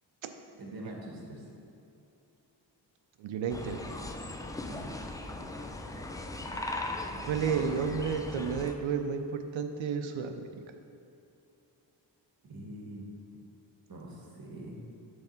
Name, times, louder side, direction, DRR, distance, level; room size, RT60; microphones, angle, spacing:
voice 1, 0.6-1.4 4.6-4.9 12.4-13.0 13.9-14.8, right 1 dB, 50° right, -1 dB, 1.5 m, -44 dB
voice 2, 3.2-3.8 6.7-6.8 7.2-10.3, right 6 dB, 90° right, 7 dB, 0.6 m, -32 dB
sound 1, 3.5-8.7, left 2 dB, 10° left, 0.3 m, -38 dB
7.1 x 3.5 x 5.7 m, 2.8 s
cardioid pair, 85°, 45 cm